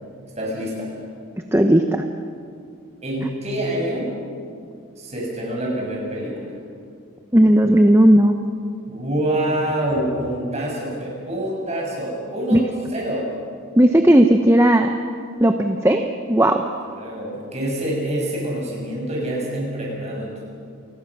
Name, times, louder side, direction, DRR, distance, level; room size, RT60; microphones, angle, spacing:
voice 1, 0.4-0.9 3.0-4.1 5.0-6.6 8.9-12.6 12.9-13.3 16.8-20.4, right 1 dB, 30° right, -3 dB, 6.9 m, -26 dB
voice 2, 1.5-2.0 7.3-8.4 12.5-12.6 13.8-15.0 15.4-16.0 16.3-16.6, right 1 dB, 10° right, 5 dB, 0.8 m, -15 dB
29.0 x 20.0 x 6.2 m, 2.3 s
head